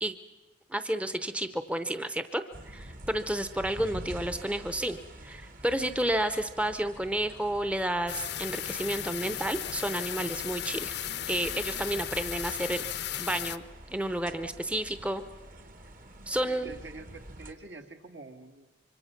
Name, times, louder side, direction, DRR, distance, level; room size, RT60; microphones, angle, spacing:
voice 1, 0.7-5.0 5.2-10.9 11.3-12.8 13.2-13.6 13.9-15.2 16.3-16.7, right 1 dB, 5° right, 10 dB, 0.7 m, -31 dB
sound 1, 2.5-17.5, right 1 dB, 50° right, 1.4 m, -47 dB
sound 2, 8.1-13.6, left 11 dB, 60° left, 0.7 m, -36 dB
voice 2, 16.3-18.7, right 2 dB, 75° right, 5 dB, 1.9 m, -47 dB
25.5 x 23.5 x 5.9 m, 1.2 s
head